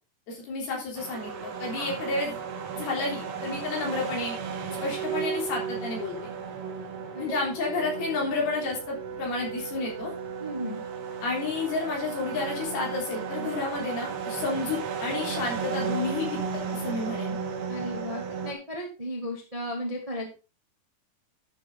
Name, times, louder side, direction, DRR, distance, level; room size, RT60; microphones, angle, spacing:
voice 1, 0.3-2.4 2.8-4.4 4.8-6.2 7.2-10.1 11.2-16.4 16.7-17.4, left 3 dB, 70° left, -1 dB, 5.4 m, -31 dB
sound 1, 1.0-18.5, right 6 dB, 75° right, 3.4 m, -34 dB
voice 2, 10.4-10.8 17.7-20.3, equal, 15° right, 0 dB, 1.2 m, -35 dB
11.5 x 7.2 x 3.8 m, 0.32 s
omnidirectional pair, 4.6 m